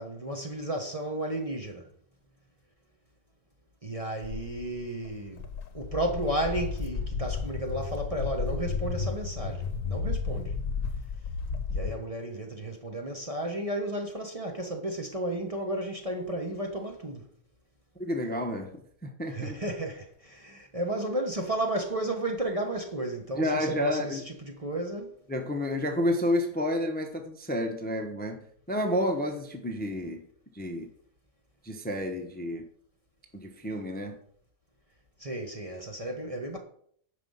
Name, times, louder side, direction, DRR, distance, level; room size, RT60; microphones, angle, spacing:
voice 1, 0.0-1.8 3.8-5.4 5.7-10.5 11.7-17.3 19.3-25.1 35.2-36.6, right 1 dB, 25° right, 1.1 m, -33 dB
Walk footsteps, 4.2-11.9, left 5 dB, 65° left, 1.3 m, -33 dB
voice 2, 18.0-18.7 19.0-19.6 23.3-24.2 25.3-30.2 30.5-30.9 31.6-32.7 33.3-34.2, left 1 dB, 10° left, 0.9 m, -30 dB
9.8 x 5.2 x 5.6 m
omnidirectional pair, 1.5 m